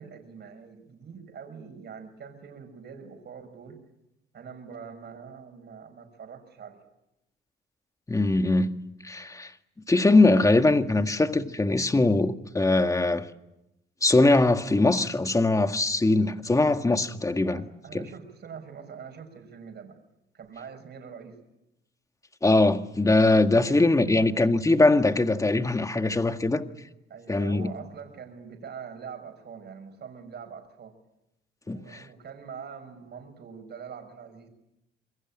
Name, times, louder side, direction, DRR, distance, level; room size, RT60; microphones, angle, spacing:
voice 1, 0.0-3.8 4.3-6.8 16.5-16.8 17.5-20.0 20.3-21.4 23.7-24.4 27.1-30.9 31.7-34.5, right 6 dB, 55° right, 6.5 m, -44 dB
voice 2, 8.1-8.7 9.0-9.5 9.9-13.3 14.0-17.7 17.9-18.0 22.4-26.7 27.3-27.7 31.7-32.0, left 2 dB, 15° left, 1.8 m, -22 dB
27.0 x 22.0 x 8.8 m
cardioid pair, 90°, 20 cm